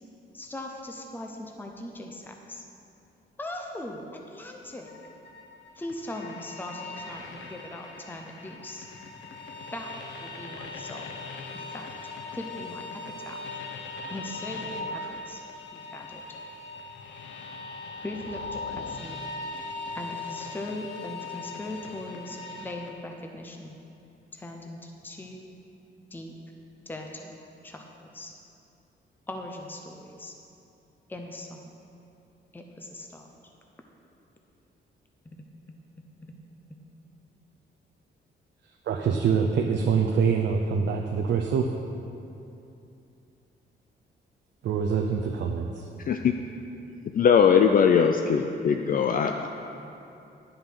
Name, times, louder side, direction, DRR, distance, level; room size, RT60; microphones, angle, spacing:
voice 1, 0.3-2.6 3.4-4.9 5.8-8.9 9.7-11.2 11.5-11.9 12.3-13.4 14.1-15.4 15.7-16.2 18.0-19.2 19.9-23.8 24.3-25.5 26.1-26.4 26.9-27.4 27.6-28.3 29.3-30.3 31.1-31.8 32.5-33.3 35.2-35.4 36.2-36.3, left 1 dB, 10° left, 2 dB, 0.8 m, -40 dB
sound 1, 4.8-22.9, left 3 dB, 80° left, 1.0 m, -39 dB
voice 2, 38.9-41.7 44.6-45.9, right 6 dB, 80° right, 2 dB, 0.7 m, -25 dB
voice 3, 47.1-49.5, left 7 dB, 50° left, 5 dB, 0.5 m, -20 dB
10.5 x 7.7 x 6.1 m, 2.7 s
cardioid pair, 130°, 19 cm